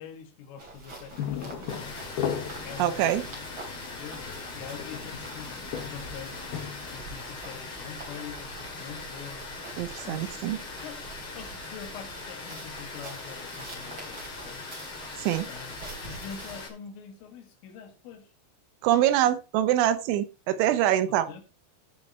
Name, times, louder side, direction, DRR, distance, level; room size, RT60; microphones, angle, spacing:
voice 1, 0.0-2.0 2.6-3.4 3.8-6.4 6.9-9.6 10.0-14.7 15.4-18.3 21.1-21.4, left 7 dB, 80° left, 4.3 m, -45 dB
sound 1, 0.6-16.6, right 3 dB, 30° right, 3.6 m, -46 dB
sound 2, 1.1-7.0, left 8 dB, 65° left, 2.9 m, -37 dB
Water, 1.7-16.7, left 3 dB, 40° left, 2.2 m, -41 dB
voice 2, 2.8-3.2 9.8-10.6 15.2-15.5 18.8-21.3, right 12 dB, 80° right, 3.0 m, -24 dB
14.5 x 6.0 x 4.3 m
omnidirectional pair, 5.6 m